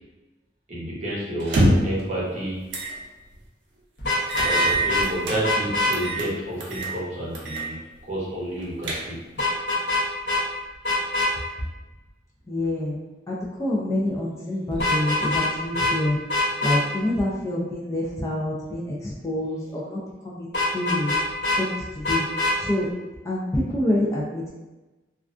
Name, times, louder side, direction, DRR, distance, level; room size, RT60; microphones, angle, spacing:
voice 1, 0.7-2.7 4.4-9.2, right 1 dB, 40° right, -6 dB, 0.7 m, -30 dB
sound 1, 1.4-2.0 2.7-2.9 3.3-3.4 4.3-5.4 5.9-6.3 6.6-6.9 7.4-7.7 8.0-8.1 8.6-9.4, right 1 dB, 85° right, 0.5 m, -24 dB
Vehicle horn car horn honking, 4.0-5.0 5.4-5.9 9.4-10.0 10.3-10.4 10.8-11.3 14.7-15.5 15.7-15.9 16.3-16.8 20.5-21.6 22.0-22.5, left 2 dB, 70° left, 0.7 m, -23 dB
voice 2, 12.5-13.0 13.3-16.2 16.6-20.5 20.7-21.1 21.6-21.7 22.0-22.2 22.6-22.9 23.2-24.5, left 1 dB, 15° left, -5 dB, 0.3 m, -26 dB
2.3 x 2.2 x 2.4 m, 1.1 s
head